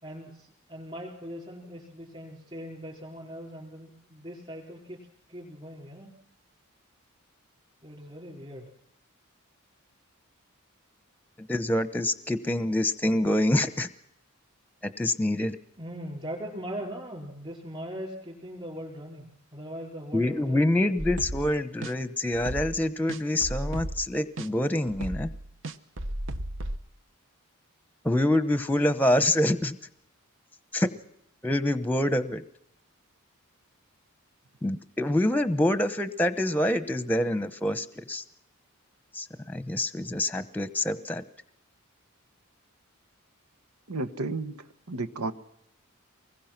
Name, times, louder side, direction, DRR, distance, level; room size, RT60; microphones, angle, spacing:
voice 1, 0.0-6.1 7.8-8.6 15.8-21.0, equal, 25° right, -1 dB, 4.6 m, -40 dB
voice 2, 11.4-13.9 14.8-15.6 20.1-25.3 28.0-29.8 30.7-30.9 31.4-32.4 34.6-38.2 39.1-41.2, left 1 dB, 10° left, 12 dB, 0.9 m, -26 dB
sound 1, 21.0-21.5 21.8-21.9 22.3-22.8 23.1-24.1 24.4-24.5 24.9-26.8, right 1 dB, 60° right, 1.0 m, -34 dB
voice 3, 43.9-45.3, right 2 dB, 90° right, 8 dB, 1.4 m, -32 dB
24.5 x 21.0 x 6.0 m, 0.74 s
head